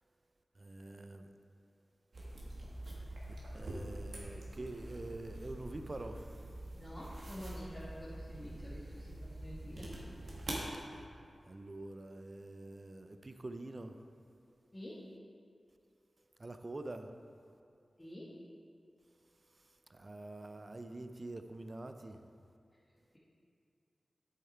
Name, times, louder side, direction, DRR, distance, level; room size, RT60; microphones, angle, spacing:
voice 1, 0.6-1.3 3.5-6.5 11.5-14.1 16.4-17.1 19.5-22.2, right 2 dB, 35° right, 7 dB, 0.6 m, -46 dB
sound 1, 2.1-10.7, right 1 dB, 65° right, 1.8 m, -45 dB
voice 2, 6.7-9.1 9.4-9.9 14.7-15.0 18.0-18.3, equal, 20° left, -8 dB, 1.7 m, -48 dB
8.7 x 7.5 x 4.5 m, 2.4 s
wide cardioid pair, 75°, 0 cm